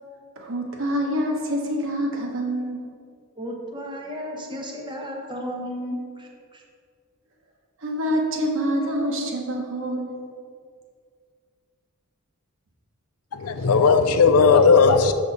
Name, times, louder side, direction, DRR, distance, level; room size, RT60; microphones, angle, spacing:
voice 1, 0.4-2.8 7.8-10.2, equal, 65° right, 1 dB, 1.1 m, -26 dB
voice 2, 3.4-6.6, equal, 20° right, 0 dB, 1.0 m, -34 dB
voice 3, 13.3-15.1, left 5 dB, 75° left, 9 dB, 0.5 m, -16 dB
7.0 x 6.2 x 4.1 m, 2.1 s
head